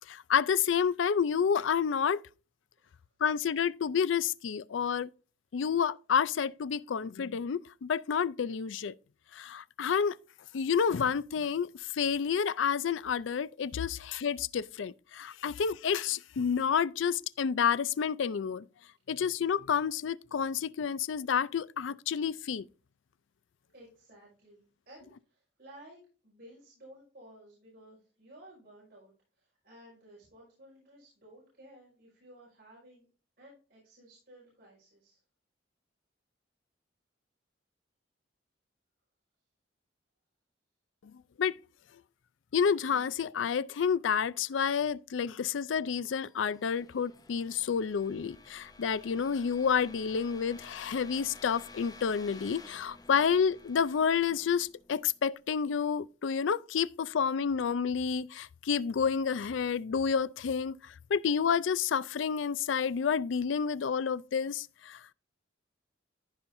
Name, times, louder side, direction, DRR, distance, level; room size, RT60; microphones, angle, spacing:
voice 1, 0.1-2.2 3.2-5.1 5.5-8.9 9.3-10.2 10.5-18.6 19.1-22.7 41.0-41.1 41.4-41.6 42.5-65.0, left 7 dB, 85° left, 0.4 m, -29 dB
voice 2, 23.7-33.1 33.4-35.2, right 1 dB, 55° right, 5.6 m, -55 dB
sound 1, 45.8-55.6, left 3 dB, 20° left, 0.7 m, -53 dB
14.5 x 5.6 x 2.6 m
head